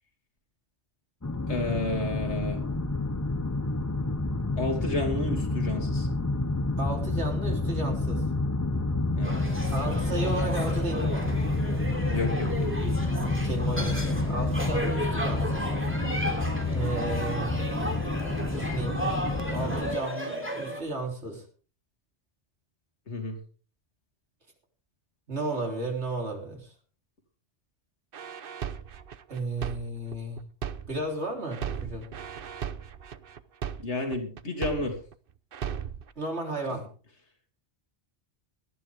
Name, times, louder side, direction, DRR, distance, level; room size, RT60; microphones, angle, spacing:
sound 1, 1.2-20.0, left 2 dB, 15° left, 0.8 m, -29 dB
voice 1, 1.5-2.6 4.6-6.1 9.1-9.5 12.1-12.7 23.1-23.4 33.8-35.0, left 2 dB, 90° left, 3 dB, 3.1 m, -31 dB
voice 2, 6.8-8.3 9.7-11.3 13.1-15.7 16.7-17.7 18.5-19.0 19.5-21.5 25.3-26.7 29.3-30.4 30.9-32.1 36.2-36.9, right 2 dB, 80° right, 1 dB, 3.9 m, -34 dB
sound 2, 9.2-20.8, equal, 10° right, 3.2 m, -34 dB
sound 3, 28.1-31.1 31.5-35.1 35.5-36.1, right 8 dB, 60° right, 1.0 m, -36 dB
18.5 x 13.0 x 3.5 m, 0.37 s
omnidirectional pair, 1.1 m